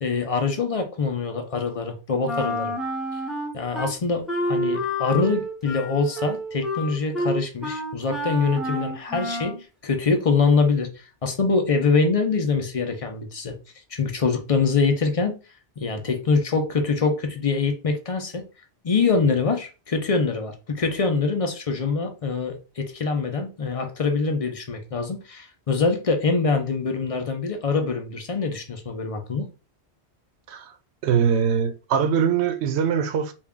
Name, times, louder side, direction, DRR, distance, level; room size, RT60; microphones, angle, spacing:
voice 1, 0.0-2.7 3.5-13.6 13.9-15.4 15.8-18.4 18.8-29.5, left 4 dB, 45° left, 0.5 m, -24 dB
Wind instrument woodwind instrument, 2.3-3.9 4.3-9.6, equal, ahead, 0.7 m, -29 dB
voice 2, 31.0-33.3, right 7 dB, 80° right, 0.9 m, -22 dB
3.5 x 2.3 x 3.5 m
omnidirectional pair, 1.1 m